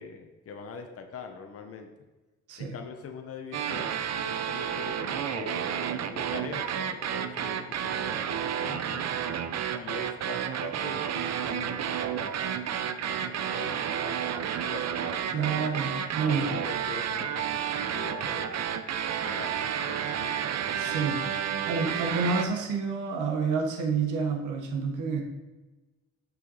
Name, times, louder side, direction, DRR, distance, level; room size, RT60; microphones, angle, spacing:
voice 1, 0.0-1.9 2.6-9.1 9.7-12.7 13.0-15.6 16.2-18.9 19.2-20.5 20.8-21.1 21.6-21.7 22.1-22.2, left 5 dB, 50° left, 4 dB, 0.9 m, -43 dB
sound 1, 3.5-22.5, right 8 dB, 60° right, 0.6 m, -31 dB
voice 2, 15.3-16.5 20.8-21.2 21.5-25.2, right 5 dB, 80° right, 2 dB, 1.2 m, -29 dB
6.6 x 6.1 x 4.0 m, 1.2 s
cardioid pair, 90°, 30 cm